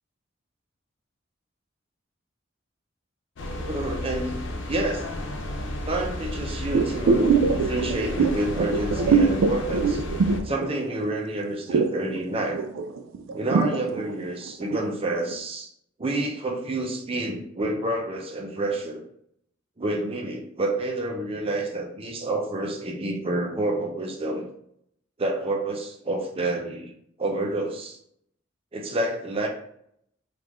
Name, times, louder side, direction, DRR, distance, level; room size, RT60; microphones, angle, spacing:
sound 1, 3.4-10.4, left 1 dB, 65° left, 0.5 m, -32 dB
voice 1, 3.7-4.4 4.7-5.1 5.8-10.0 10.4-12.6 13.3-15.7 16.0-19.0 19.8-24.4 25.2-26.9 27.2-28.0 28.7-29.5, right 1 dB, 30° right, 1 dB, 0.5 m, -28 dB
sound 2, 6.7-11.1 11.4-14.9 15.3-15.4, right 5 dB, 80° right, 0.3 m, -23 dB
3.5 x 2.4 x 3.0 m, 0.69 s
head